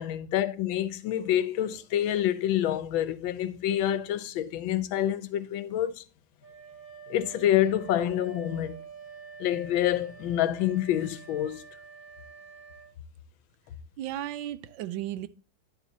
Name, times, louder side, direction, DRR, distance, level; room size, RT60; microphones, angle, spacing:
voice 1, 0.0-6.0 7.1-8.8 9.4-11.6, left 11 dB, 85° left, 1.4 m, -27 dB
Wind instrument woodwind instrument, 6.4-13.0, right 6 dB, 25° right, 2.0 m, -47 dB
voice 2, 14.0-15.3, right 13 dB, 80° right, 1.3 m, -34 dB
9.8 x 7.3 x 2.7 m
omnidirectional pair, 2.1 m